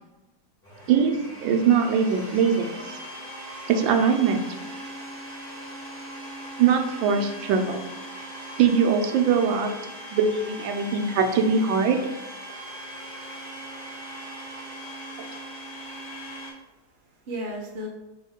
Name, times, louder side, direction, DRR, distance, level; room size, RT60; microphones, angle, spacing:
Domestic sounds home sounds, 0.6-16.5, right 1 dB, 10° left, 0.6 m, -39 dB
voice 1, 1.4-3.0 3.7-4.4 6.6-7.8 8.6-9.7 10.1-12.0 15.2-15.3, right 6 dB, 90° right, 5 dB, 1.3 m, -21 dB
voice 2, 15.7-17.9, equal, 45° right, -2 dB, 0.7 m, -38 dB
3.6 x 3.0 x 3.5 m, 1.1 s
omnidirectional pair, 2.0 m